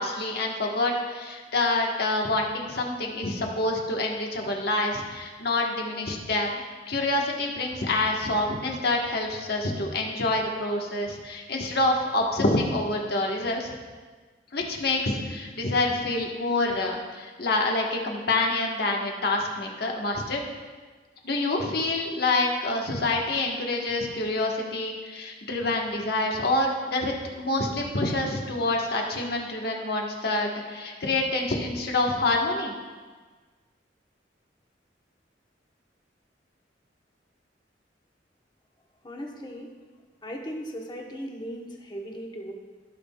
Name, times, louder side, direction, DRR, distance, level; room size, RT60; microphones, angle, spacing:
voice 1, 0.0-6.6 6.9-13.7 14.5-20.4 21.2-32.7, left 2 dB, 60° left, 0 dB, 1.2 m, -27 dB
voice 2, 39.0-39.7 40.2-42.5, equal, 25° left, 0 dB, 1.0 m, -37 dB
16.5 x 5.5 x 2.3 m, 1.4 s
head